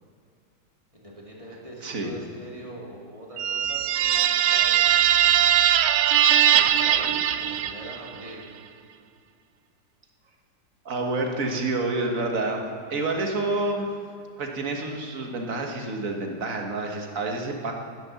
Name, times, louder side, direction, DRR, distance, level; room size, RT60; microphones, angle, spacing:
voice 1, 0.9-5.4 6.0-8.5, right 1 dB, 20° right, -3 dB, 2.3 m, -43 dB
voice 2, 1.8-2.1 10.9-12.7 12.9-13.9 14.4-17.7, right 2 dB, 50° right, 2 dB, 1.7 m, -28 dB
sound 1, 3.4-8.1, right 10 dB, 80° right, 0.7 m, -20 dB
12.0 x 10.0 x 7.0 m, 2.3 s
omnidirectional pair, 2.0 m